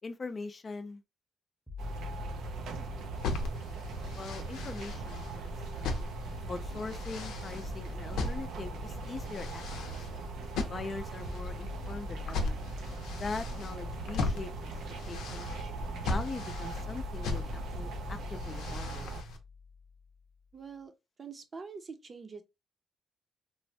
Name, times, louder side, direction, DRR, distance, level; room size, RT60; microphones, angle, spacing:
voice 1, 0.0-1.0 4.1-5.9 6.4-10.0 10.6-12.6 13.1-14.5 15.1-15.5 16.0-19.1, left 4 dB, 40° left, 0.4 m, -42 dB
sound 1, 1.7-5.7 6.5-20.5, left 5 dB, 5° left, 0.7 m, -47 dB
sound 2, 1.8-19.2, right 3 dB, 85° right, 0.5 m, -41 dB
sound 3, 3.1-19.4, left 3 dB, 90° left, 0.6 m, -38 dB
voice 2, 20.5-20.9 21.2-22.4, right 5 dB, 40° right, 0.6 m, -44 dB
3.1 x 2.1 x 2.7 m
cardioid pair, 85°, 0 cm